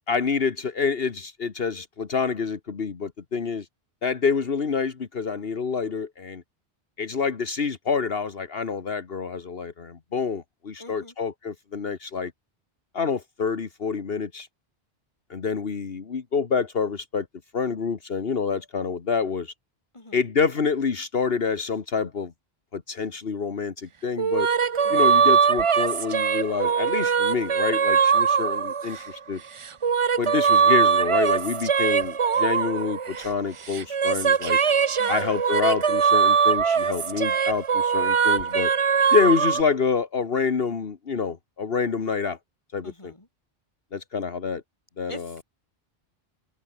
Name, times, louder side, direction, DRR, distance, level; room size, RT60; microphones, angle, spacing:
voice 1, 0.1-3.7 4.0-6.4 7.0-12.3 12.9-14.5 15.3-17.3 17.5-19.5 20.1-22.3 22.7-24.5 24.9-29.4 30.2-34.6 35.1-38.7 39.1-42.4 42.7-43.1 43.9-44.6 45.0-45.3, left 5 dB, 65° left, 1.6 m, -27 dB
voice 2, 10.8-11.1 19.9-20.3 24.8-25.3 35.0-35.4 42.8-43.3 45.1-45.4, left 2 dB, 30° left, 3.2 m, -44 dB
sound 1, 24.2-29.1 29.6-33.4 33.7-39.6, right 6 dB, 40° right, 0.6 m, -22 dB
omnidirectional pair, 1.1 m